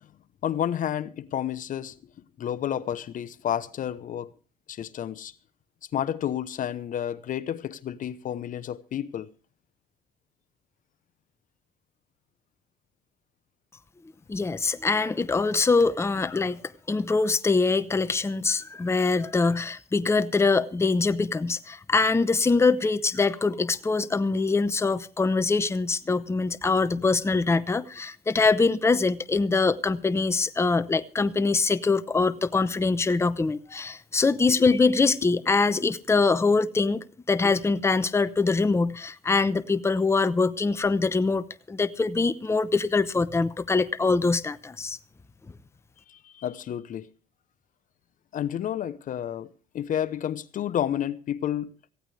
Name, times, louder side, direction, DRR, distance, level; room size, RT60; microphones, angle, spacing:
voice 1, 0.4-1.9 2.4-4.3 4.7-5.3 5.9-9.3 27.5-27.6 34.6-34.7 46.1-47.1 48.3-51.7, left 10 dB, 50° left, 0.8 m, -30 dB
voice 2, 14.3-45.0, left 4 dB, 15° left, 0.8 m, -24 dB
18.5 x 15.5 x 3.3 m
cardioid pair, 110°, 17 cm